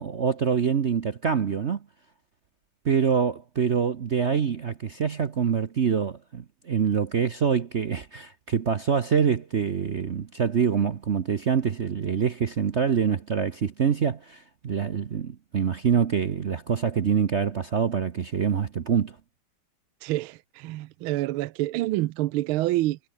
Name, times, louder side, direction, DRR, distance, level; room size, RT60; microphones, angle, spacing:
voice 1, 0.0-1.8 2.8-19.2, right 7 dB, 50° right, 0.8 m, -25 dB
voice 2, 20.0-23.0, right 16 dB, 80° right, 1.4 m, -27 dB
omnidirectional pair, 2.3 m